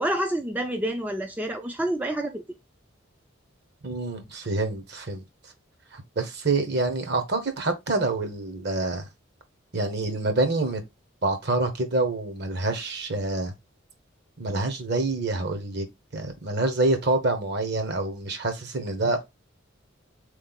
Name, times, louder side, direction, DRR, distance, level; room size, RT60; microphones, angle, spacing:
voice 1, 0.0-2.4, right 1 dB, 10° right, 0.3 m, -28 dB
voice 2, 3.8-5.2 5.9-9.1 9.7-10.8 11.2-13.5 14.4-15.9 16.1-19.2, right 2 dB, 55° right, 0.9 m, -27 dB
3.7 x 3.2 x 3.9 m
head